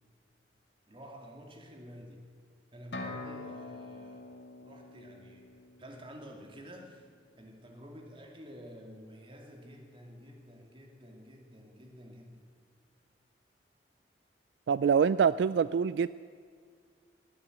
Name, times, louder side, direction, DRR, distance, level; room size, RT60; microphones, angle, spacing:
voice 1, 0.9-2.3 2.7-7.1 7.4-12.5, equal, 30° right, 2 dB, 2.3 m, -50 dB
sound 1, 2.9-6.7, left 2 dB, 80° left, 1.8 m, -45 dB
voice 2, 14.7-16.1, right 6 dB, 75° right, 16 dB, 0.3 m, -25 dB
20.5 x 8.9 x 7.7 m, 2.1 s
head